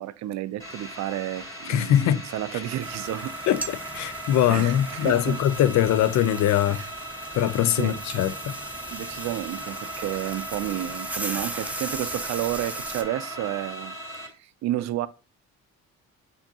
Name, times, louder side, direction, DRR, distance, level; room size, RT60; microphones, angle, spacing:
voice 1, 0.0-3.3 4.5-5.4 6.7-6.9 7.8-8.0 8.9-15.1, right 13 dB, 65° right, 0.4 m, -31 dB
sound 1, 0.6-14.3, right 1 dB, 10° left, 2.1 m, -38 dB
voice 2, 1.7-2.2 3.5-3.6 3.9-6.8 7.3-8.5, left 11 dB, 65° left, 0.4 m, -22 dB
sound 2, 2.8-13.0, right 2 dB, 5° right, 0.4 m, -38 dB
5.9 x 2.7 x 2.7 m
cardioid pair, 90°, 30 cm